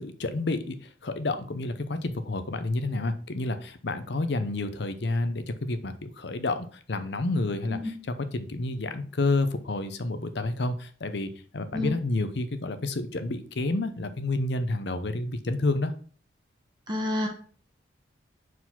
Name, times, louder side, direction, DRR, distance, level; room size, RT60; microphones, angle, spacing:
voice 1, 0.0-7.9 8.3-15.9, left 2 dB, 65° left, 10 dB, 0.7 m, -29 dB
voice 2, 16.9-17.3, left 2 dB, 20° right, 1 dB, 1.1 m, -28 dB
4.7 x 4.1 x 5.6 m, 0.43 s
head